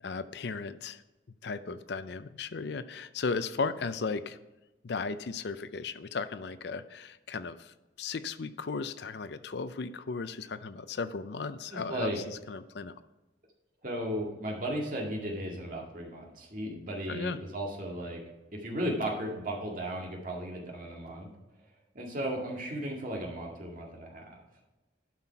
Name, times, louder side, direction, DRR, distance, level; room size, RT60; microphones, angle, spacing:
voice 1, 0.0-1.0 1.4-4.4 4.8-12.9 17.1-17.4, left 4 dB, 60° left, 13 dB, 0.5 m, -36 dB
voice 2, 11.7-12.2 13.8-18.2 18.5-21.3 21.9-24.4, right 1 dB, 45° right, -1 dB, 2.0 m, -35 dB
11.5 x 5.8 x 4.6 m, 1.1 s
head